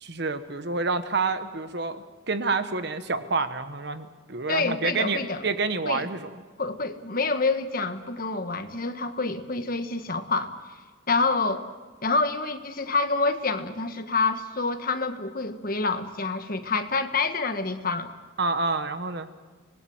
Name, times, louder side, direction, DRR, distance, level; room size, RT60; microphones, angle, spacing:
voice 1, 0.0-6.4 18.4-19.3, right 3 dB, 55° right, 10 dB, 1.3 m, -28 dB
voice 2, 4.5-5.4 5.8-6.1 6.6-10.5 11.1-11.7 12.0-18.1, left 3 dB, 45° left, 8 dB, 1.5 m, -27 dB
26.0 x 20.0 x 7.9 m, 1.4 s
head